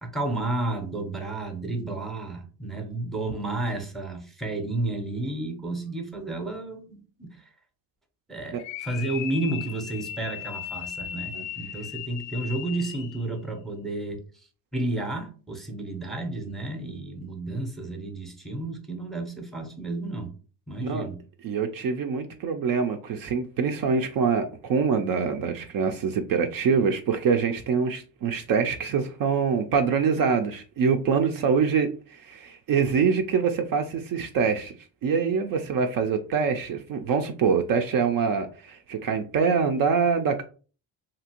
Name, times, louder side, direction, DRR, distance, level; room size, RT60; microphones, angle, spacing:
voice 1, 0.0-7.5 8.3-14.2 14.7-20.3 20.7-21.2, right 2 dB, ahead, 0.6 m, -32 dB
sound 1, 8.6-13.3, left 10 dB, 65° left, 0.5 m, -37 dB
voice 2, 21.4-34.7 35.0-40.4, right 6 dB, 50° right, 0.4 m, -25 dB
2.9 x 2.5 x 2.8 m
cardioid pair, 90°, 47 cm